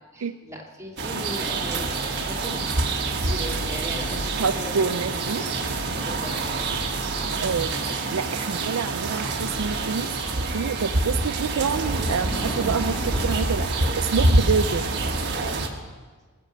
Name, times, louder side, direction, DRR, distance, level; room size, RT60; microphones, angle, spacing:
voice 1, 0.1-5.1 6.0-6.8, equal, 15° right, -2 dB, 2.7 m, -38 dB
sound 1, 1.0-15.7, right 2 dB, 50° right, 1.4 m, -26 dB
voice 2, 4.4-5.4 7.4-7.7 8.1-10.1 10.5-13.7 14.0-14.9, right 6 dB, 70° right, 10 dB, 0.5 m, -27 dB
sound 2, 10.4-15.1, equal, 10° left, 1.9 m, -39 dB
20.0 x 6.8 x 7.7 m, 1.5 s
head